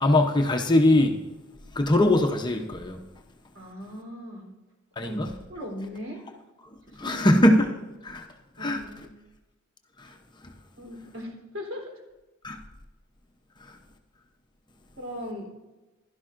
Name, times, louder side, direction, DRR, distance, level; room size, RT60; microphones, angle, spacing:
voice 1, 0.0-1.2 1.7-3.0 5.0-5.3 7.0-7.7 8.0-8.3 8.6-8.8 10.0-10.1 12.4-12.6 13.6-13.7, left 1 dB, 20° left, 3 dB, 0.8 m, -21 dB
voice 2, 3.5-4.5 5.0-5.2 5.5-6.3 6.9-7.3 8.6-9.2 10.8-12.0 15.0-15.5, left 1 dB, 70° right, 0 dB, 3.5 m, -38 dB
16.0 x 11.5 x 2.6 m, 1.1 s
head